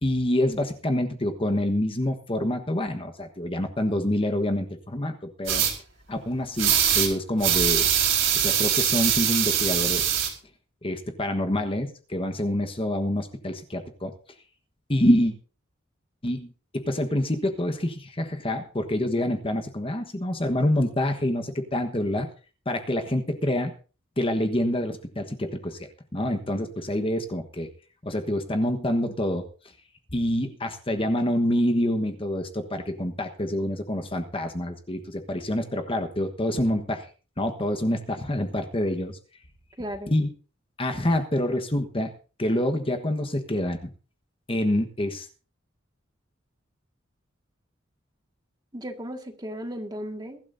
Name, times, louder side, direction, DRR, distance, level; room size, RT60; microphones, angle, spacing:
voice 1, 0.0-5.6 6.1-7.9 8.3-10.0 10.8-14.1 14.9-15.3 16.2-22.3 22.6-23.7 24.2-25.8 26.1-27.7 28.0-29.4 30.1-37.1 37.4-39.2 40.1-40.3 40.8-42.1 42.4-43.8 44.5-45.3, left 1 dB, 25° left, 5 dB, 1.3 m, -26 dB
sound 1, 5.5-5.7 6.6-7.1 7.4-10.3, right 9 dB, 70° right, 4.4 m, -22 dB
voice 2, 39.8-40.1 48.7-50.4, equal, 20° right, 4 dB, 1.9 m, -35 dB
22.5 x 12.5 x 2.7 m, 0.37 s
head